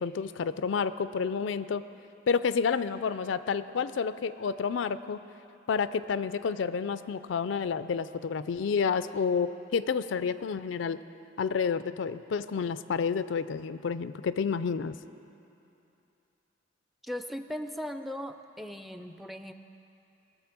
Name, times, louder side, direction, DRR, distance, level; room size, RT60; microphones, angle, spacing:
voice 1, 0.0-1.8 2.3-5.2 5.7-11.0 11.4-15.0, left 6 dB, 75° left, 14 dB, 0.4 m, -30 dB
voice 2, 17.0-19.5, equal, ahead, 8 dB, 0.4 m, -38 dB
20.0 x 6.9 x 6.1 m, 2.8 s
head